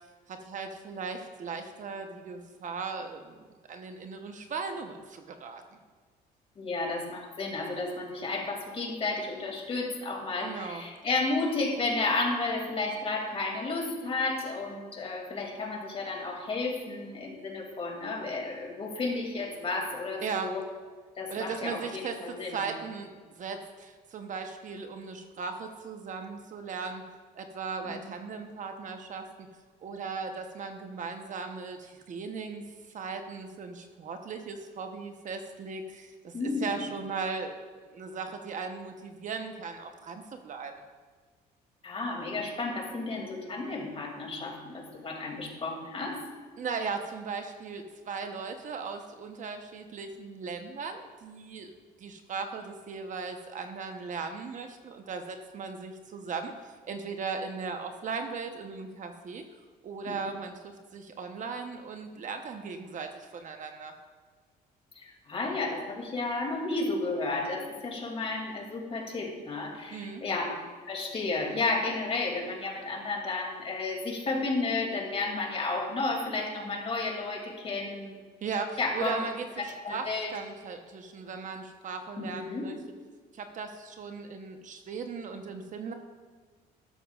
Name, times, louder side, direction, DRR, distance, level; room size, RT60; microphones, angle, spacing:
voice 1, 0.3-5.8 10.4-10.8 20.2-20.5 21.3-27.0 27.3-29.3 29.8-32.7 32.9-40.8 46.6-59.4 59.8-63.9 69.9-70.2 78.4-82.8 83.3-85.9, right 5 dB, 50° right, 5 dB, 1.0 m, -38 dB
voice 2, 6.6-20.6 21.2-22.6 27.8-27.9 36.3-36.7 41.8-46.2 60.1-60.2 65.0-70.6 70.9-78.2 78.8-79.2 79.6-80.4 82.2-82.7, left 3 dB, 35° left, 1 dB, 2.5 m, -32 dB
13.0 x 12.0 x 2.4 m, 1.5 s
cardioid pair, 110°, 17 cm